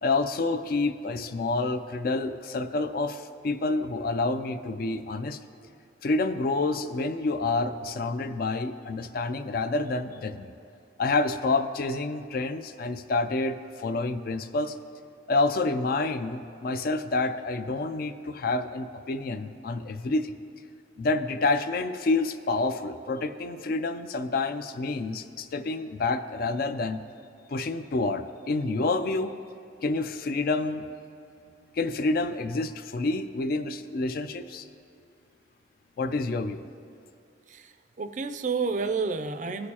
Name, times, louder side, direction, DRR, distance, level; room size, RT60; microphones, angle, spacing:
voice 1, 0.0-5.4 6.0-10.5 11.0-14.8 15.3-20.3 21.0-27.0 27.5-29.3 29.8-30.9 31.7-34.7 36.0-36.6, left 3 dB, 50° left, 10 dB, 0.4 m, -28 dB
voice 2, 37.5-39.7, right 4 dB, 40° right, 9 dB, 0.4 m, -30 dB
17.0 x 6.5 x 2.9 m, 2.7 s
head